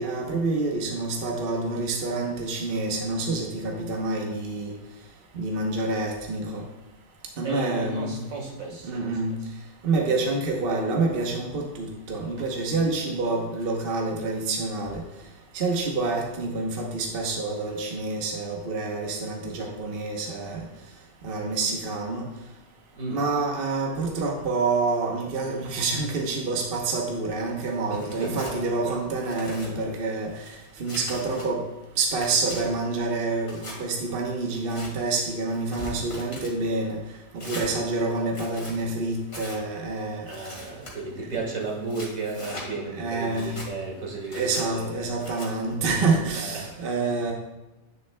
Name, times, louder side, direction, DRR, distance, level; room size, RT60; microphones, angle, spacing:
voice 1, 0.0-4.7 5.3-6.6 7.4-8.2 8.8-9.4 9.8-15.0 15.5-20.7 21.2-22.2 23.1-30.4 30.8-31.6 32.0-37.0 37.3-40.3 43.0-43.6 44.3-47.3, right 3 dB, 45° right, 0 dB, 1.0 m, -27 dB
voice 2, 7.4-9.4 12.4-12.5 23.0-23.3 27.9-29.0 40.2-45.1 46.3-47.3, right 3 dB, 65° right, 0 dB, 1.9 m, -34 dB
Tearing, 28.0-28.6 29.1-29.7 30.3-31.5 31.9-32.6 33.4-33.8 34.5-34.9 35.5-36.5 37.4-37.7 38.3-38.8 39.3-39.6 40.3-40.9 41.7-42.7 43.2-43.7 44.2-44.6 45.2-45.5, left 1 dB, 45° left, 2.3 m, -41 dB
10.0 x 6.8 x 2.2 m, 0.99 s
omnidirectional pair, 1.5 m